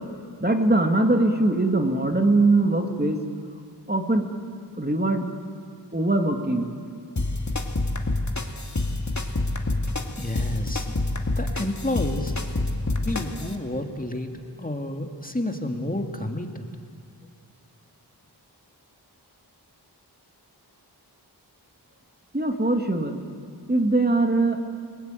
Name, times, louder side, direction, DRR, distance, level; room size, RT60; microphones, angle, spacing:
voice 1, 0.4-3.2 3.9-4.3 4.8-5.3 5.9-6.7 22.3-23.2 23.7-24.6, right 2 dB, 25° right, 4 dB, 2.2 m, -21 dB
sound 1, 7.2-13.5, left 2 dB, 45° left, 2.1 m, -27 dB
voice 2, 10.2-10.9 11.4-12.3 13.0-16.7, left 1 dB, 20° left, 3 dB, 2.3 m, -30 dB
29.5 x 18.5 x 9.2 m, 2.3 s
wide cardioid pair, 45°, 41 cm